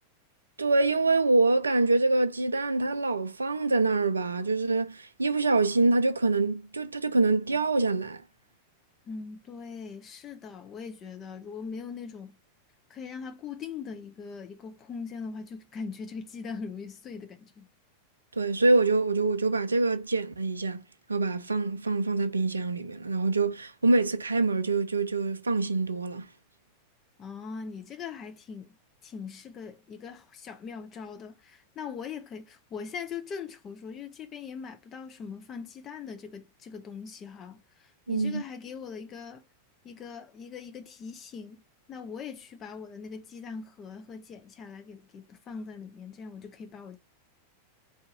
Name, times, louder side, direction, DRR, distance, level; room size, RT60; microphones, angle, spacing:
voice 1, 0.6-8.2 18.4-20.8 21.1-26.3 38.1-38.4, right 3 dB, 75° right, 0.4 m, -25 dB
voice 2, 9.0-12.4 12.9-17.7 27.2-28.8 29.0-39.4 39.8-41.6 41.9-47.0, left 5 dB, 30° left, 0.7 m, -41 dB
3.5 x 2.8 x 3.9 m
figure-of-eight pair, 90°, 0 cm